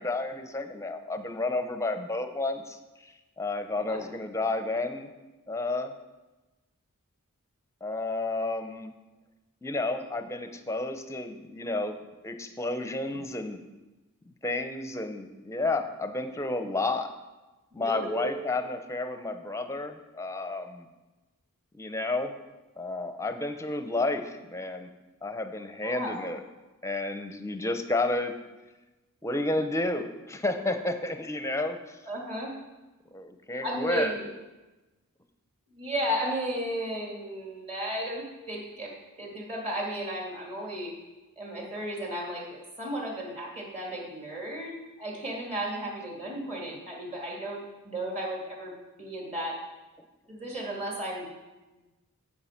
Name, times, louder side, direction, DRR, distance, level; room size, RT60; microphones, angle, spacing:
voice 1, 0.0-5.1 5.5-5.9 7.8-8.9 9.6-13.6 14.3-17.1 17.7-20.9 21.7-22.4 22.8-24.9 25.2-26.4 26.8-28.3 29.2-32.0 33.1-34.1, left 2 dB, 15° left, 8 dB, 0.7 m, -31 dB
voice 2, 17.7-18.3 25.8-26.2 32.1-32.6 33.6-34.3 35.7-38.9 39.2-40.9 41.4-48.7 49.0-49.6 50.3-51.3, equal, 30° right, -2 dB, 2.4 m, -34 dB
9.4 x 7.7 x 5.8 m, 1.1 s
head